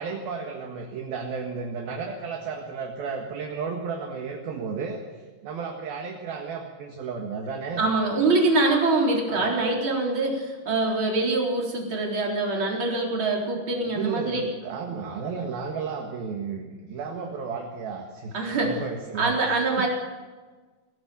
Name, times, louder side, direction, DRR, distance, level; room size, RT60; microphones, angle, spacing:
voice 1, 0.0-5.0 5.4-7.9 9.3-9.5 13.9-19.9, right 5 dB, 60° right, 2 dB, 2.9 m, -33 dB
voice 2, 7.8-14.5 18.3-18.8 19.2-19.9, right 3 dB, 25° right, -1 dB, 4.1 m, -24 dB
22.5 x 17.0 x 7.0 m, 1.3 s
omnidirectional pair, 5.8 m